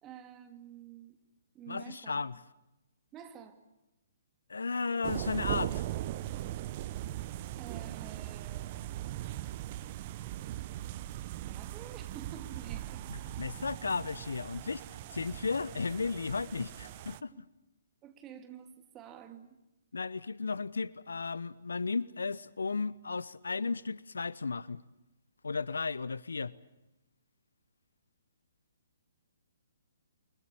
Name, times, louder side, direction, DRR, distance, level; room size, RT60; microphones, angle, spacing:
voice 1, 0.0-1.2 1.5-2.2 3.1-3.6 7.6-8.8 11.4-13.0 17.3-17.4 18.0-19.5, right 9 dB, 20° right, 2.6 m, -49 dB
voice 2, 1.7-2.4 4.5-5.9 13.1-17.5 19.9-24.8 25.4-26.5, left 4 dB, 70° left, 0.9 m, -35 dB
sound 1, 5.0-17.2, right 14 dB, 35° right, 1.0 m, -39 dB
29.5 x 24.0 x 7.0 m
figure-of-eight pair, 130°, 0 cm